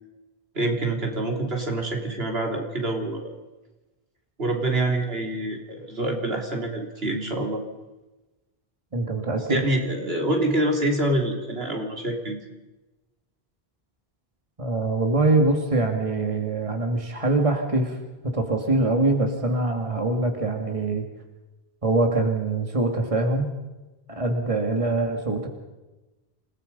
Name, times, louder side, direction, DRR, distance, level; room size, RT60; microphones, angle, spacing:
voice 1, 0.6-3.3 4.4-7.6 9.4-12.4, right 1 dB, 70° right, 2 dB, 3.5 m, -26 dB
voice 2, 8.9-9.6 14.6-18.0 18.3-21.0 21.8-23.5 24.1-25.5, right 2 dB, 30° right, 4 dB, 2.4 m, -23 dB
28.0 x 18.5 x 5.4 m, 1.1 s
omnidirectional pair, 1.1 m